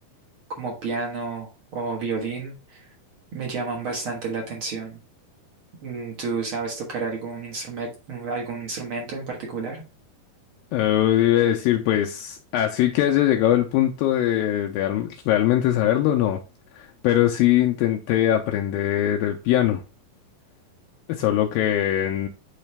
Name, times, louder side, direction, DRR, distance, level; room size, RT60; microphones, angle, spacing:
voice 1, 0.6-2.9 3.3-5.0 5.8-9.8, right 4 dB, 60° right, 1.4 m, -31 dB
voice 2, 10.7-16.4 16.7-19.8 21.1-22.3, left 12 dB, 80° left, 2.1 m, -21 dB
9.1 x 3.2 x 3.3 m
omnidirectional pair, 4.4 m